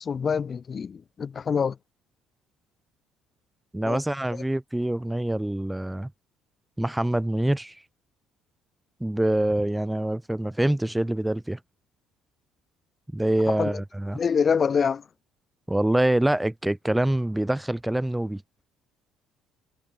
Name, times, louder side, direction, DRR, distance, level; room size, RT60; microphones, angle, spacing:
voice 1, 0.0-1.8 3.8-4.0 13.5-13.8 14.1-15.0, left 6 dB, 40° left, 1.4 m, -25 dB
voice 2, 3.7-6.1 6.8-7.8 9.0-11.6 13.1-14.2 15.7-18.4, right 1 dB, 5° right, 0.7 m, -25 dB
supercardioid pair, 90°, 0 cm